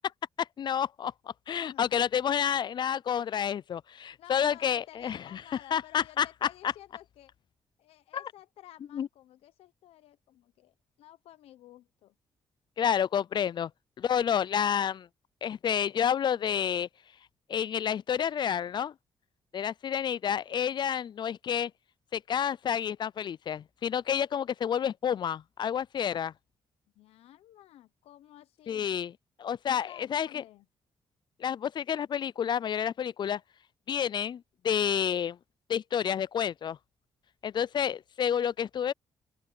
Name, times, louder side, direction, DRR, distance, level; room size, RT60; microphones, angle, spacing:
voice 1, 0.4-1.1 1.5-5.4 5.7-6.5 8.1-8.2 8.9-9.1 12.8-13.7 14.0-15.1 15.4-16.9 17.5-18.9 19.5-21.7 22.1-26.3 28.7-29.1 29.4-30.4 31.4-33.4 33.9-35.4 35.7-36.8 37.4-38.9, left 8 dB, 50° left, 0.4 m, -29 dB
voice 2, 1.6-1.9 4.2-7.3 7.8-12.1 27.0-29.0 29.7-30.7, left 13 dB, 85° left, 0.9 m, -53 dB
open air
supercardioid pair, 65°, 10 cm